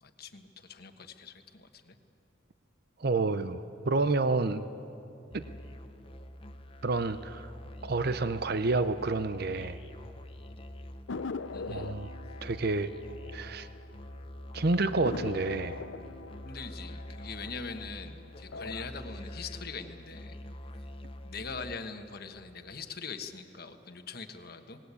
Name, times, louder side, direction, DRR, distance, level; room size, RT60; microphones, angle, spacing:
voice 1, 0.0-2.0 11.5-11.9 16.4-20.4 20.7-20.9 21.2-24.8, left 4 dB, 50° left, 6 dB, 1.4 m, -42 dB
voice 2, 3.0-4.6 5.3-5.4 6.8-7.5 7.8-9.8 11.7-12.1 12.4-12.9 13.3-13.7 14.5-15.8, right 3 dB, 50° right, 12 dB, 0.7 m, -29 dB
Musical instrument, 5.3-21.8, equal, 30° left, 0.9 m, -46 dB
sound 1, 11.1-14.1 14.4-14.5 15.0-18.0 18.4-19.0, left 3 dB, 70° left, 0.7 m, -41 dB
26.5 x 20.0 x 8.4 m, 2.8 s
head